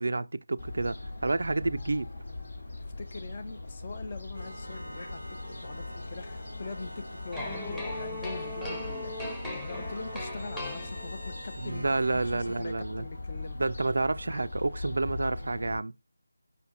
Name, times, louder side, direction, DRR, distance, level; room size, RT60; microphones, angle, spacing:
voice 1, 0.0-2.1 11.6-13.0 13.6-15.9, right 2 dB, 60° right, 0.4 m, -29 dB
Fowl, 0.6-15.8, left 3 dB, 55° left, 2.2 m, -41 dB
voice 2, 3.0-13.6, left 3 dB, 30° left, 1.1 m, -43 dB
sound 1, 4.3-12.6, equal, 80° left, 4.7 m, -45 dB
sound 2, 7.3-11.4, left 1 dB, 5° left, 1.1 m, -38 dB
7.2 x 5.7 x 2.7 m
figure-of-eight pair, 160°, 0 cm